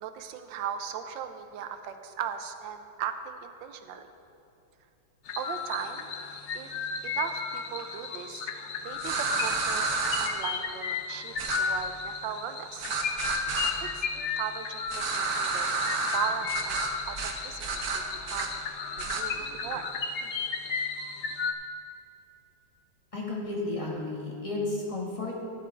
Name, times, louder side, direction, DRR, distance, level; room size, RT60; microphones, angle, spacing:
voice 1, 0.0-4.1 5.4-6.1 6.5-6.7 7.0-8.5 8.8-9.9 10.2-12.9 13.8-15.7 16.1-16.8 17.1-17.8 18.3-18.6 19.1-19.9, right 8 dB, 80° right, 8 dB, 1.4 m, -37 dB
sound 1, 5.3-21.5, left 5 dB, 70° left, 0.6 m, -34 dB
sound 2, 9.0-10.3 11.4-11.6 12.8-13.7 14.9-16.2 16.5-16.9 17.2-17.3 17.6-18.5 19.0-19.2, right 4 dB, 60° right, 1.3 m, -30 dB
voice 2, 23.1-25.3, left 2 dB, 20° left, -5 dB, 1.8 m, -32 dB
12.0 x 7.5 x 4.4 m, 2.8 s
omnidirectional pair, 2.0 m